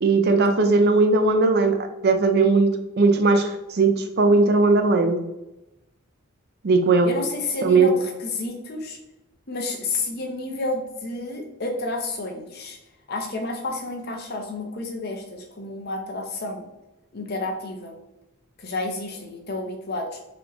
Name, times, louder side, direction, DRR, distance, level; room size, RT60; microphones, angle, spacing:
voice 1, 0.0-1.8 2.0-2.7 3.0-3.9 4.2-5.2 6.6-7.1 7.6-7.9, right 3 dB, 50° right, 6 dB, 0.5 m, -18 dB
voice 2, 7.0-9.0 9.5-12.8 13.1-16.6 17.1-18.0 18.6-20.2, left 2 dB, 45° left, 2 dB, 0.7 m, -30 dB
4.0 x 3.2 x 2.9 m, 0.94 s
head